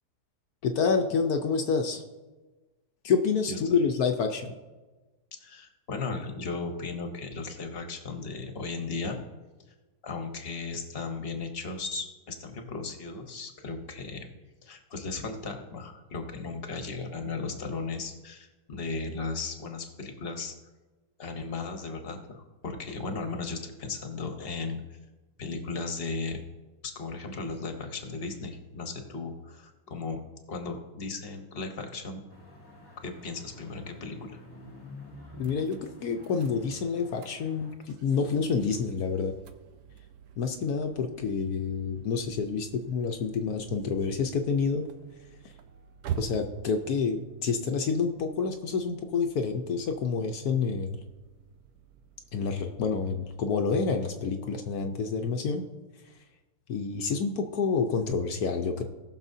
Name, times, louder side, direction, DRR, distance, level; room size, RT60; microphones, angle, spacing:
voice 1, 0.6-2.0 3.0-4.5 35.4-39.3 40.4-44.8 46.2-51.0 52.3-55.6 56.7-58.8, left 5 dB, 70° left, 4 dB, 1.2 m, -28 dB
voice 2, 3.5-3.8 5.4-9.2 10.0-14.3 14.6-20.5 21.2-24.8 25.4-26.4 26.8-30.2 30.5-32.2 33.0-34.4, left 3 dB, 40° left, 5 dB, 1.2 m, -36 dB
sound 1, 32.3-37.8, left 1 dB, 15° left, 1.3 m, -49 dB
sound 2, 35.4-53.4, right 8 dB, 70° right, 1.1 m, -46 dB
19.0 x 6.4 x 2.7 m, 1.2 s
omnidirectional pair, 1.7 m